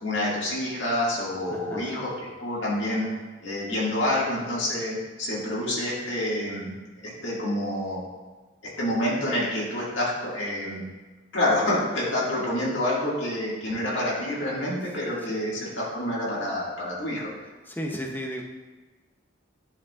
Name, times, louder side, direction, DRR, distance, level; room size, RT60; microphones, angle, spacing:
voice 1, 0.0-3.1 3.4-6.7 7.2-8.0 8.8-10.8 11.3-17.3, left 1 dB, 65° left, -6 dB, 1.9 m, -27 dB
voice 2, 1.5-2.1 12.2-12.3 15.3-15.5 17.6-18.4, equal, 10° left, 1 dB, 0.6 m, -34 dB
11.0 x 4.8 x 2.4 m, 1.3 s
head